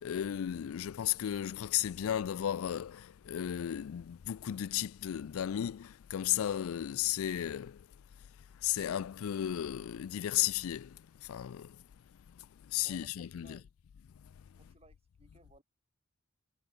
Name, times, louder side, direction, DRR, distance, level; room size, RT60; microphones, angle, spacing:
voice 1, 0.0-7.8 8.6-11.8 12.7-13.6, left 11 dB, 80° left, 0.4 m, -34 dB
voice 2, 12.8-13.7 14.6-15.6, right 2 dB, 30° right, 7.6 m, -61 dB
head